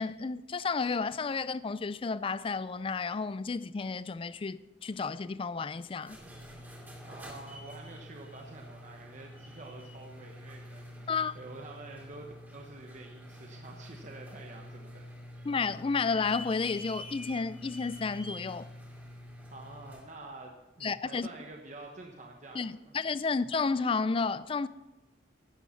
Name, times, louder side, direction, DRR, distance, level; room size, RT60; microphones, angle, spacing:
voice 1, 0.0-6.2 11.1-11.3 15.5-18.7 20.8-21.3 22.5-24.7, left 4 dB, 30° left, 0.3 m, -32 dB
sound 1, 5.9-20.1, equal, 10° right, 2.5 m, -47 dB
voice 2, 7.0-15.5 19.5-22.9, right 2 dB, 40° right, 1.1 m, -48 dB
11.5 x 9.1 x 5.6 m
head